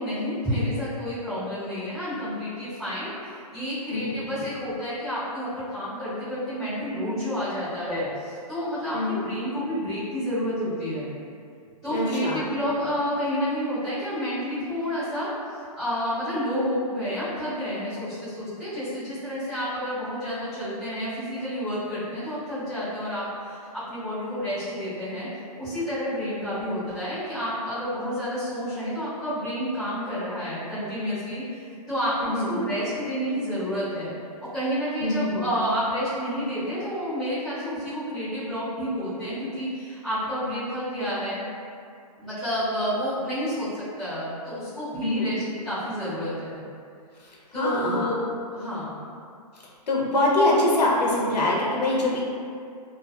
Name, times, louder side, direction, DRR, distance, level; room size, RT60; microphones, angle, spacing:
voice 1, 0.0-11.1 11.8-15.3 15.8-25.3 25.6-34.1 34.4-41.4 42.2-46.6 47.5-48.2 48.5-48.9, equal, ahead, -26 dB, 0.4 m, -30 dB
voice 2, 3.9-4.2 8.9-9.2 11.8-12.4 32.2-32.6 35.0-35.4 45.0-45.3 47.2-48.1 49.5-52.3, left 2 dB, 80° left, -4 dB, 0.7 m, -24 dB
2.4 x 2.4 x 2.3 m, 2.4 s
hypercardioid pair, 180°, 21 cm